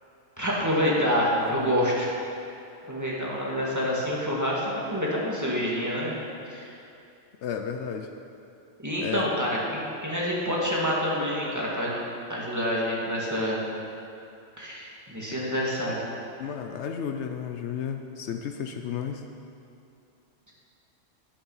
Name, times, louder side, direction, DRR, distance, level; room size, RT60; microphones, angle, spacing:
voice 1, 0.4-2.1 2.9-6.2 6.5-6.7 8.8-12.0 12.3-13.6 14.6-16.0, equal, 15° right, -6 dB, 2.0 m, -27 dB
voice 2, 1.4-1.8 7.4-8.1 9.0-9.3 16.4-19.2, left 7 dB, 70° left, 5 dB, 0.9 m, -33 dB
10.5 x 8.7 x 5.6 m, 2.7 s
omnidirectional pair, 1.2 m